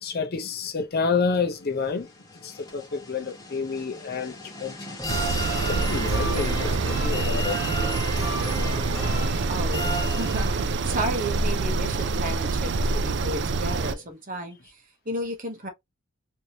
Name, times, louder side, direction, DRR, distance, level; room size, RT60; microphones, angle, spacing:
voice 1, 0.0-2.1 2.4-4.8 5.7-7.6, left 5 dB, 45° left, 0.6 m, -29 dB
sound 1, 1.8-10.8, equal, 15° left, 1.5 m, -34 dB
sound 2, 5.1-13.9, right 3 dB, 50° right, 0.4 m, -26 dB
voice 2, 9.5-15.7, right 1 dB, 35° right, 0.8 m, -33 dB
3.2 x 2.6 x 2.8 m
head